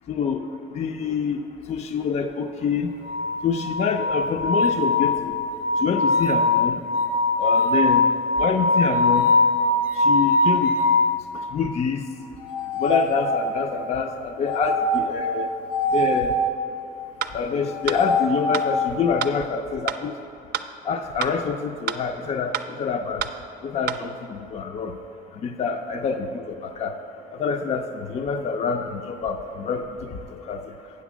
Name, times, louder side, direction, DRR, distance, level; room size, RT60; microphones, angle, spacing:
voice 1, 0.1-1.4 1.7-2.9 3.4-5.3 5.8-6.8 7.4-8.1 8.4-9.3 10.0-10.8 11.3-12.0 12.8-15.5 15.9-16.3 17.3-20.1 20.9-23.3 23.6-25.0 25.3-26.9 27.4-30.6, left 5 dB, 40° left, 6 dB, 0.5 m, -26 dB
sound 1, 3.0-11.2 12.4-13.7 14.4-16.4 17.6-19.0, left 2 dB, 90° left, 1.3 m, -22 dB
sound 2, 17.2-17.3 17.9-18.0 18.5-18.6 19.2-19.3 19.9-20.0 20.5-20.7 21.2-21.3 21.9-22.0 22.5-22.7 23.2-23.3 23.9-24.0, right 10 dB, 70° right, 0.5 m, -27 dB
8.3 x 6.4 x 6.1 m, 2.7 s
cardioid pair, 110°, 17 cm